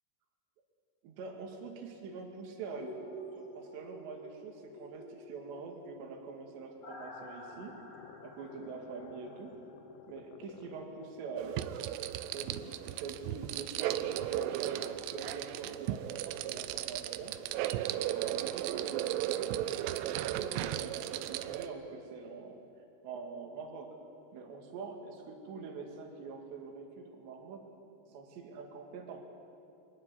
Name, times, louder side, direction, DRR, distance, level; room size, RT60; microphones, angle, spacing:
voice 1, 1.0-3.0 3.4-7.7 8.2-9.5 10.1-11.6 12.3-17.3 17.9-22.6 23.0-23.9 24.3-27.6 28.1-29.3, right 5 dB, 65° right, 2 dB, 4.2 m, -44 dB
sound 1, 2.7-10.6 10.9-11.0, equal, 45° left, 5.0 m, -50 dB
sound 2, 6.6-11.4, left 8 dB, 75° left, 3.1 m, -54 dB
sound 3, 11.4-21.7, right 13 dB, 85° right, 2.4 m, -35 dB
24.0 x 14.5 x 9.7 m, 2.7 s
omnidirectional pair, 5.5 m